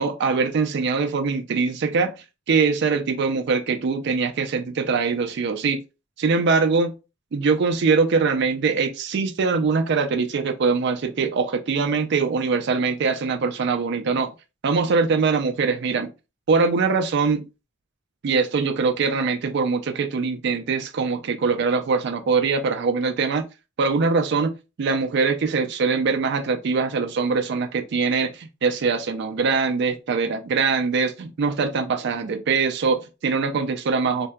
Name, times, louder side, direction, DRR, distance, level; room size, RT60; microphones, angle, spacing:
voice 1, 0.0-2.2 2.5-5.8 6.2-6.9 7.3-14.3 14.6-16.1 16.5-17.5 18.2-23.5 23.8-34.3, right 4 dB, 55° right, 0.4 m, -22 dB
2.6 x 2.1 x 2.2 m
head